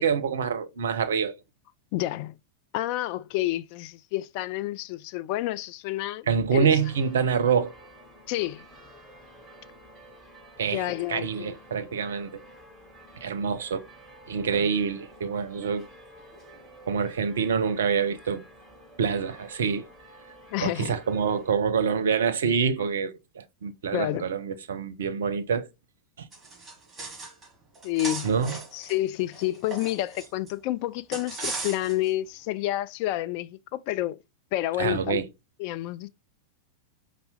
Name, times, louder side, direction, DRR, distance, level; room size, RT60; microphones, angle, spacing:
voice 1, 0.0-1.3 6.3-7.7 10.6-10.8 11.1-12.3 13.2-13.8 14.3-15.9 16.9-18.4 19.0-19.9 20.6-25.7 26.2-26.3 28.2-28.5 34.8-35.3, right 6 dB, 65° right, 0.5 m, -26 dB
voice 2, 1.9-2.3 2.7-6.7 8.3-8.6 10.7-11.6 20.5-21.0 22.8-22.9 23.9-24.3 27.8-28.3 28.7-34.2 34.5-35.2 35.6-36.1, left 15 dB, 45° left, 0.3 m, -29 dB
sound 1, 6.8-21.5, right 1 dB, ahead, 2.0 m, -51 dB
sound 2, 26.3-27.5 27.7-30.5 31.1-32.1, right 3 dB, 20° right, 1.6 m, -37 dB
5.4 x 2.1 x 4.1 m
figure-of-eight pair, 90°, 0 cm